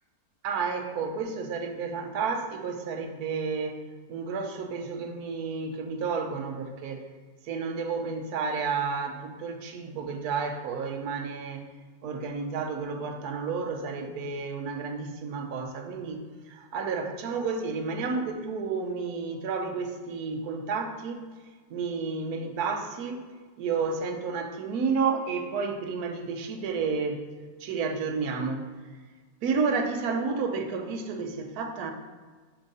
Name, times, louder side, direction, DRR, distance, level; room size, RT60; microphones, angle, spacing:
voice 1, 0.4-7.0 7.4-11.7 12.0-21.3 21.7-27.2 27.6-28.8 29.4-31.9, right 5 dB, 65° right, 4 dB, 1.0 m, -31 dB
5.0 x 4.5 x 5.3 m, 1.4 s
omnidirectional pair, 2.0 m